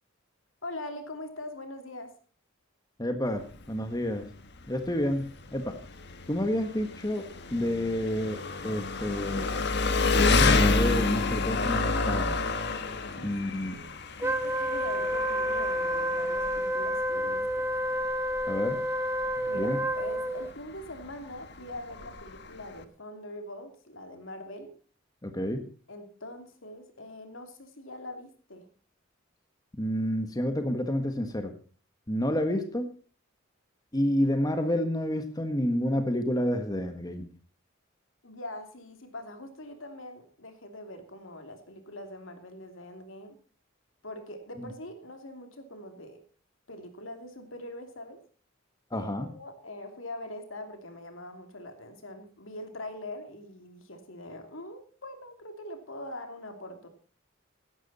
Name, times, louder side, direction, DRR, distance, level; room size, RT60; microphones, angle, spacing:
voice 1, 0.6-2.1 13.1-13.3 13.7-13.9 14.2-17.7 19.5-24.7 25.9-28.7 38.2-43.4 44.0-46.2 46.7-48.2 48.9-56.9, left 1 dB, 75° left, 6 dB, 2.9 m, -42 dB
voice 2, 3.0-4.3 4.7-5.8 6.3-9.5 10.1-12.4 13.2-13.7 18.5-18.8 19.4-19.8 25.2-25.7 29.8-31.5 32.1-32.9 33.9-37.2 44.6-44.7 48.9-49.3, left 1 dB, 20° left, 7 dB, 1.5 m, -29 dB
Engine, 3.3-22.8, left 3 dB, 55° left, 1.6 m, -30 dB
Wind instrument woodwind instrument, 14.2-20.5, equal, 10° right, 0.8 m, -29 dB
16.5 x 12.5 x 4.2 m, 0.38 s
head